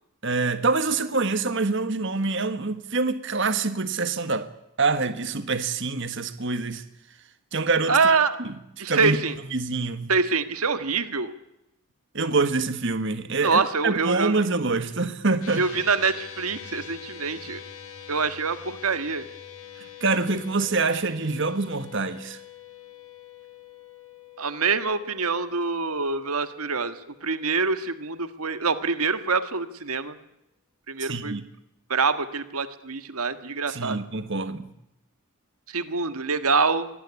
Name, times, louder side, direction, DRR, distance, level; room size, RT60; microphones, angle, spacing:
voice 1, 0.2-4.5 4.8-6.8 7.5-8.2 8.4-8.5 8.9-9.2 9.5-10.1 12.1-15.7 19.8-22.4 31.0-31.4 33.7-34.7, right 3 dB, 55° right, 1.6 m, -26 dB
voice 2, 7.9-8.4 8.8-9.4 10.1-11.3 13.4-14.4 15.6-17.6 18.1-19.3 24.4-27.0 27.2-30.2 30.9-31.4 31.9-34.0 35.7-36.9, right 4 dB, 80° right, 1.7 m, -25 dB
sound 1, 15.4-27.9, left 8 dB, 75° left, 7.4 m, -45 dB
24.0 x 19.0 x 9.9 m
head